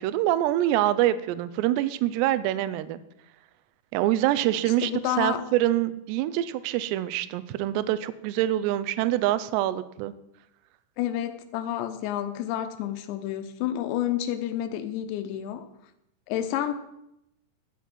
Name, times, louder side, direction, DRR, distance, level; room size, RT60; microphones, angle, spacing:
voice 1, 0.0-3.0 3.9-4.9 5.2-10.1, right 14 dB, 85° right, 14 dB, 2.8 m, -25 dB
voice 2, 4.8-5.4 11.0-15.7 16.3-16.7, left 11 dB, 90° left, 8 dB, 3.0 m, -29 dB
12.0 x 7.4 x 6.1 m, 0.85 s
omnidirectional pair, 4.9 m